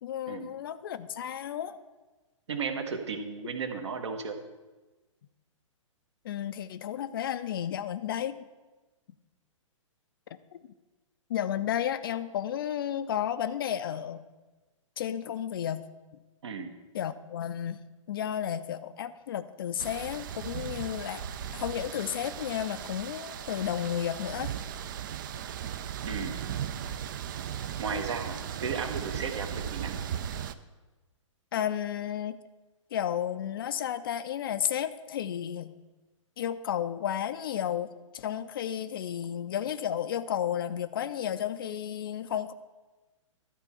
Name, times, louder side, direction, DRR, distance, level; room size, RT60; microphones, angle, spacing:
voice 1, 0.0-1.8 6.2-8.4 11.3-14.2 15.0-15.9 16.9-17.8 18.1-21.2 21.5-24.5 31.5-32.4 32.9-35.7 36.4-42.5, left 10 dB, 45° left, 12 dB, 0.4 m, -32 dB
voice 2, 2.5-4.4 16.4-16.7 26.0-26.4 27.8-29.9, right 5 dB, 60° right, 6 dB, 1.1 m, -34 dB
sound 1, 19.8-30.5, right 9 dB, 40° right, 0.4 m, -37 dB
12.0 x 4.5 x 7.0 m, 1.2 s
figure-of-eight pair, 120°, 17 cm